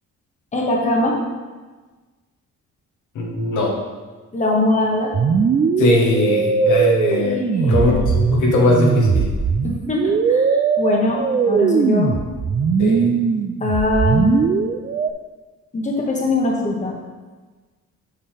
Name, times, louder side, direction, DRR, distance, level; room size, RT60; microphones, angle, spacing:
voice 1, 0.5-1.2 4.3-5.1 7.2-8.0 9.6-12.2 13.6-14.5 15.7-16.9, left 2 dB, 25° left, -1 dB, 1.2 m, -21 dB
voice 2, 3.1-3.7 5.8-7.4 7.7-9.3 12.8-13.1, left 1 dB, 80° left, -1 dB, 1.4 m, -19 dB
sound 1, 5.1-15.1, right 5 dB, 30° right, 0.4 m, -19 dB
6.6 x 5.5 x 3.4 m, 1.3 s
cardioid pair, 90°, 30 cm